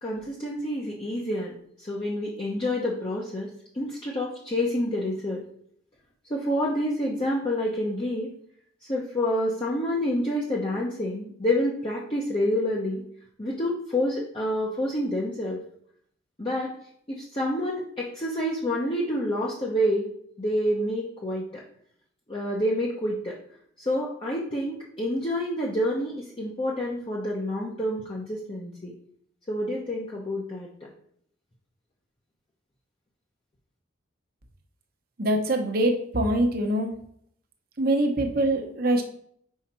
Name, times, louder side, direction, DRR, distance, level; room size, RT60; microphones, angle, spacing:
voice 1, 0.0-5.4 6.3-8.3 8.9-13.0 13.4-15.6 16.4-16.7 17.1-20.1 20.4-21.6 22.3-23.4 23.8-28.9 29.5-30.7, left 1 dB, 25° left, -4 dB, 0.8 m, -28 dB
voice 2, 35.2-36.9 37.8-39.0, right 1 dB, 50° right, 4 dB, 0.9 m, -24 dB
5.7 x 4.8 x 4.4 m, 0.65 s
head